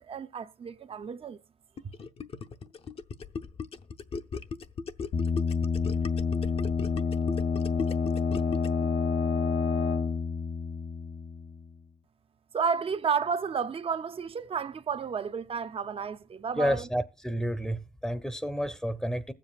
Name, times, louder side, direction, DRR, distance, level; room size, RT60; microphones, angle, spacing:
voice 1, 0.0-1.4 12.5-16.9, right 6 dB, 50° right, 0.8 m, -31 dB
Gurgling, 1.8-8.9, left 5 dB, 50° left, 0.8 m, -37 dB
sound 1, 5.1-11.7, left 5 dB, 80° left, 0.8 m, -28 dB
voice 2, 16.6-19.3, equal, 5° left, 0.8 m, -30 dB
20.5 x 7.7 x 2.4 m
cardioid pair, 80°, 12 cm